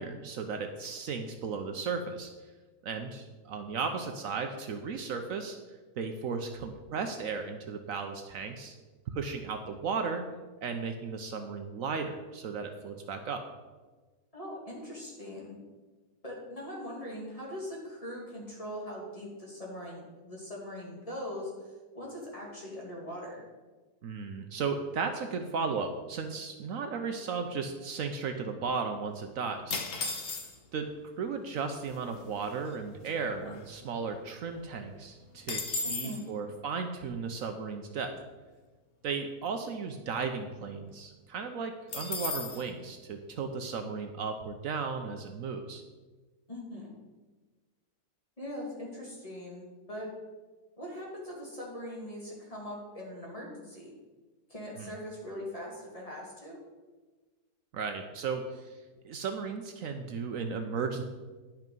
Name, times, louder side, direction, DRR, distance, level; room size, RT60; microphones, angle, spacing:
voice 1, 0.0-2.3 2.8-5.6 6.0-8.7 9.1-10.2 10.6-13.4 24.0-29.8 30.7-30.9 31.2-38.1 39.0-45.8 54.8-54.9 57.7-58.8 59.0-61.0, right 5 dB, 65° right, 6 dB, 1.1 m, -35 dB
voice 2, 14.3-15.6 16.2-21.5 21.9-23.4 35.8-36.2 46.5-46.9 48.4-50.1 50.8-53.9 54.5-56.6, left 1 dB, 25° left, -4 dB, 2.4 m, -41 dB
sound 1, 29.7-30.8 31.6-31.7 31.9-32.2 32.7-34.1 34.5-34.6 34.8-36.2 41.9-42.6, left 3 dB, 45° left, 1.0 m, -36 dB
10.5 x 5.8 x 5.3 m, 1.3 s
omnidirectional pair, 1.6 m